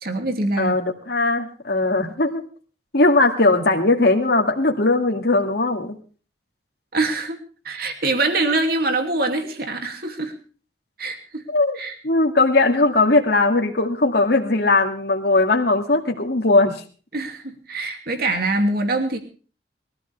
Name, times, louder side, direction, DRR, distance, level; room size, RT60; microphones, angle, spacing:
voice 1, 0.0-0.7 6.9-7.4 7.6-10.3 11.0-11.4 11.7-11.9 17.1-19.2, right 2 dB, 60° right, 5 dB, 2.7 m, -24 dB
voice 2, 0.6-2.4 2.9-6.0 11.5-11.8 12.0-16.8, left 2 dB, 65° left, 2 dB, 2.3 m, -19 dB
22.0 x 14.0 x 3.5 m, 0.38 s
head